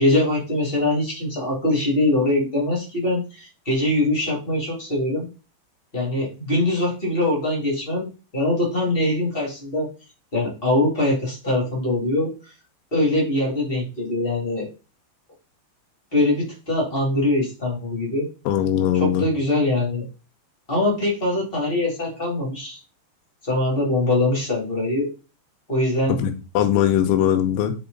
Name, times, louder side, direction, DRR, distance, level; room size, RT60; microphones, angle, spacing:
voice 1, 0.0-5.3 5.9-9.9 10.3-12.3 12.9-14.7 16.1-18.3 18.9-20.0 20.7-22.8 23.4-25.1 25.7-26.2, left 1 dB, 25° left, -3 dB, 1.2 m, -22 dB
voice 2, 18.5-19.2 26.1-27.7, left 10 dB, 90° left, 6 dB, 3.3 m, -20 dB
8.3 x 3.8 x 3.9 m, 0.32 s
omnidirectional pair, 5.2 m